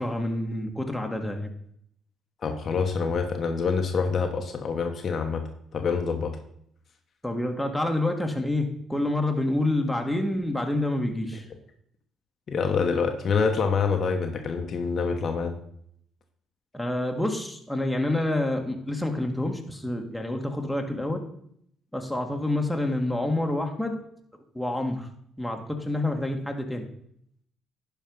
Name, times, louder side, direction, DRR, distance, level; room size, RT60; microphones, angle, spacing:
voice 1, 0.0-1.5 7.2-11.4 16.7-21.2 21.9-24.0 24.5-25.1 25.4-26.8, left 1 dB, 5° left, 2 dB, 1.9 m, -28 dB
voice 2, 2.4-5.4 5.7-6.3 12.5-15.6, left 5 dB, 55° left, 4 dB, 1.1 m, -26 dB
11.0 x 4.6 x 5.5 m, 0.69 s
hypercardioid pair, 60°, 0 cm